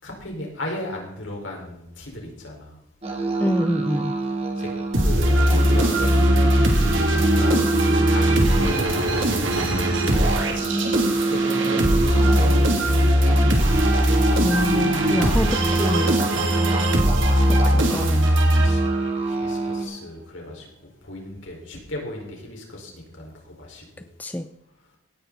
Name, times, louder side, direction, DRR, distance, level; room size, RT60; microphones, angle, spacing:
voice 1, 0.0-2.7 4.6-4.7 5.0-7.6 8.1-13.4 18.6-20.7 21.0-24.1, left 1 dB, 65° left, -1 dB, 4.9 m, -36 dB
sound 1, 3.0-19.8, right 3 dB, 30° right, 2.6 m, -26 dB
voice 2, 3.4-4.2 14.3-16.3 17.5-18.3 24.2-24.4, left 1 dB, 10° left, 9 dB, 0.5 m, -26 dB
sound 2, 4.9-19.2, equal, 70° right, 2.8 m, -20 dB
18.0 x 10.0 x 4.1 m, 0.79 s
head